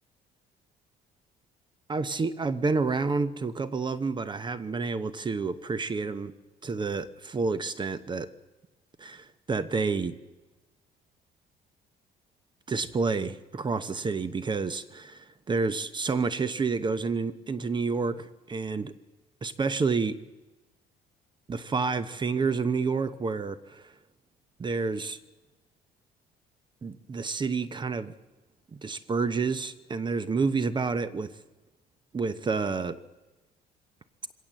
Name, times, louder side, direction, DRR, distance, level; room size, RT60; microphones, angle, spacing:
voice 1, 1.9-6.4 6.6-8.3 9.0-10.1 12.7-18.9 19.4-20.2 21.5-23.9 24.6-25.2 26.8-28.1 28.7-31.3 32.1-33.0, right 4 dB, 25° right, 14 dB, 0.9 m, -29 dB
23.0 x 17.5 x 7.5 m, 1.1 s
cardioid pair, 110°, 17 cm